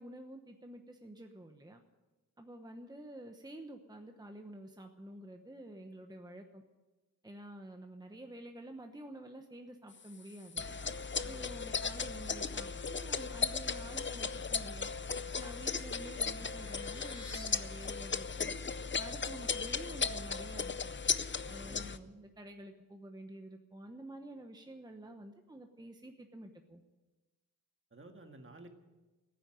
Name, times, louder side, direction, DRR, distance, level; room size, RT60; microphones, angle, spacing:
voice 1, 0.0-1.8 2.4-6.6 7.2-10.7 11.2-14.9 15.3-18.6 18.9-20.9 21.5-26.8, right 1 dB, 10° right, 4 dB, 1.0 m, -49 dB
sound 1, 10.6-22.0, left 5 dB, 35° left, 0.6 m, -36 dB
sound 2, 15.2-17.4, left 2 dB, 60° left, 5.2 m, -54 dB
voice 2, 21.7-22.1 27.9-28.7, right 2 dB, 40° right, 5 dB, 1.8 m, -54 dB
15.5 x 9.4 x 9.9 m, 1.2 s
wide cardioid pair, 125°, 33 cm